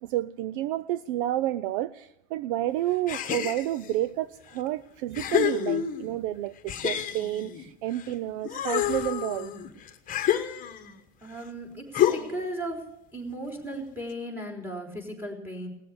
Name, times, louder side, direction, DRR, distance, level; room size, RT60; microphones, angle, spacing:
voice 1, 0.0-9.5, right 14 dB, 55° right, 0.6 m, -30 dB
sound 1, 3.1-3.9 4.6-4.7 5.1-6.2 6.7-8.1 8.4-11.0 11.9-12.5, left 11 dB, 25° left, 1.4 m, -28 dB
voice 2, 11.2-12.8 13.1-15.7, right 1 dB, 5° right, 3.6 m, -36 dB
18.5 x 7.6 x 9.5 m
supercardioid pair, 130°, 32 cm